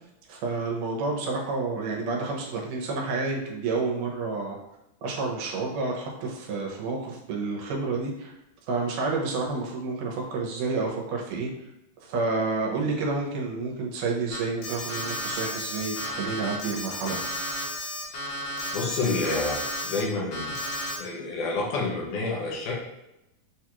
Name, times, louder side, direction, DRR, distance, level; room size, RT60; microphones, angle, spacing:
voice 1, 0.3-4.6 5.0-8.3 8.7-11.5 12.0-17.3, right 3 dB, 80° right, -1 dB, 2.3 m, -29 dB
Alarm, 14.3-20.0 20.3-21.0, left 1 dB, 60° left, 1.8 m, -33 dB
voice 2, 18.7-20.6 21.0-22.8, left 3 dB, 80° left, -2 dB, 2.3 m, -29 dB
6.7 x 2.3 x 2.9 m, 0.89 s
omnidirectional pair, 3.7 m